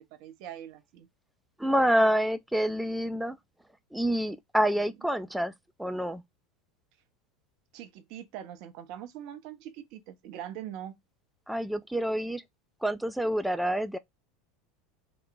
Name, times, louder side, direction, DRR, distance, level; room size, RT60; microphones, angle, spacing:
voice 1, 0.2-1.1 4.7-4.9 7.7-10.9, right 10 dB, 55° right, 0.5 m, -42 dB
voice 2, 1.6-3.4 3.9-5.5 5.8-6.2 11.5-12.4 12.8-14.0, equal, 5° right, 0.3 m, -27 dB
2.9 x 2.1 x 2.5 m
hypercardioid pair, 80°, 0 cm